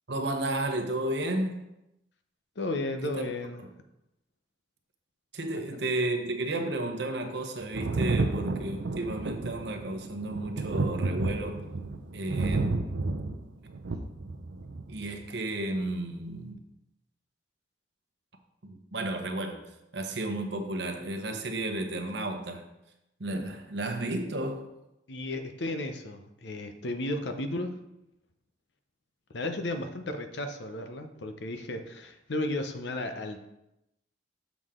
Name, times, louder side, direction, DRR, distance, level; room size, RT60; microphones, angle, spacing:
voice 1, 0.1-1.6 3.0-3.2 3.6-3.7 5.3-11.6 12.1-13.0 14.9-16.6 18.6-19.6 19.9-22.6 23.2-24.6, right 2 dB, 60° right, 5 dB, 1.0 m, -32 dB
voice 2, 2.6-3.6 5.5-5.6 25.1-27.8 29.3-33.5, left 1 dB, 65° left, 7 dB, 0.8 m, -34 dB
Thunder, 7.7-15.1 16.2-16.3, right 3 dB, 85° right, 0.6 m, -31 dB
7.1 x 6.1 x 3.7 m, 0.88 s
head